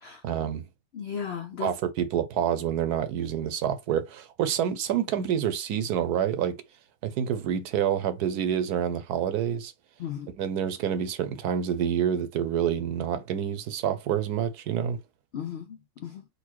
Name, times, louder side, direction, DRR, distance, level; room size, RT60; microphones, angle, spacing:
voice 1, 0.2-0.7 1.6-6.6 7.0-9.7 10.4-15.0, right 9 dB, 75° right, 1.2 m, -27 dB
voice 2, 0.9-1.7 10.0-10.3 15.3-16.3, left 8 dB, 90° left, 0.5 m, -36 dB
4.1 x 2.4 x 4.5 m
omnidirectional pair, 1.7 m